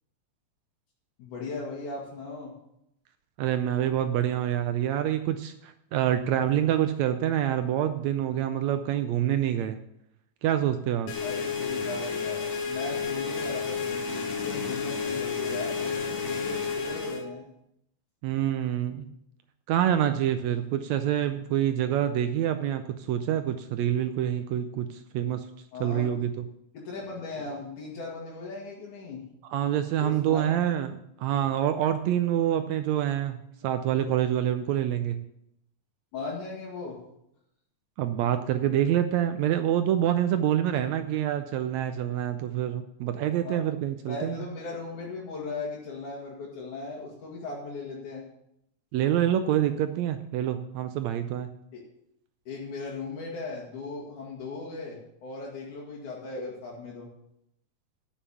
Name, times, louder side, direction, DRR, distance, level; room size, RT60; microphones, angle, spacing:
voice 1, 1.2-2.5 11.2-17.4 25.7-26.1 26.7-29.2 30.0-30.5 36.1-37.0 43.4-43.6 44.1-48.2 51.7-51.8 52.5-57.1, left 3 dB, 80° left, -5 dB, 3.3 m, -37 dB
voice 2, 3.4-9.8 10.4-11.1 18.2-19.1 19.7-25.5 25.8-26.5 29.4-33.4 33.6-35.2 38.0-44.4 48.9-51.5, right 11 dB, 75° right, 9 dB, 1.7 m, -26 dB
sound 1, 11.1-17.2, left 5 dB, 60° left, 2.2 m, -31 dB
9.9 x 7.3 x 6.9 m, 0.78 s
omnidirectional pair, 3.5 m